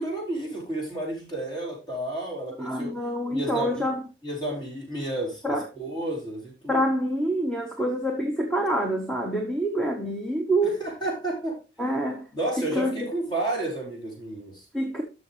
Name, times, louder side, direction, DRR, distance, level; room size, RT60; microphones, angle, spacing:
voice 1, 0.0-2.9 3.3-3.9 4.2-6.9 10.8-11.6 12.3-14.6, right 1 dB, 25° left, 4.6 m, -31 dB
voice 2, 2.6-4.0 5.4-5.7 6.7-10.8 11.8-12.3 12.6-13.1 14.7-15.0, right 1 dB, 5° left, 0.9 m, -26 dB
12.5 x 6.5 x 3.2 m
head